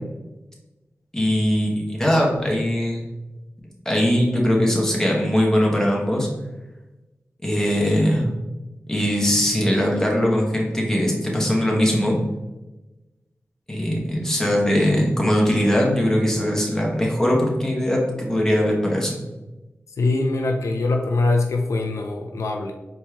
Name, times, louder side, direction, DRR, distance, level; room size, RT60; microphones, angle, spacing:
voice 1, 1.1-3.1 3.8-6.3 7.4-8.3 8.9-12.2 13.7-19.2, equal, 10° left, -2 dB, 1.4 m, -20 dB
voice 2, 20.0-22.7, left 2 dB, 80° left, 3 dB, 0.4 m, -22 dB
4.3 x 3.5 x 2.9 m, 1.1 s
cardioid pair, 45°, 5 cm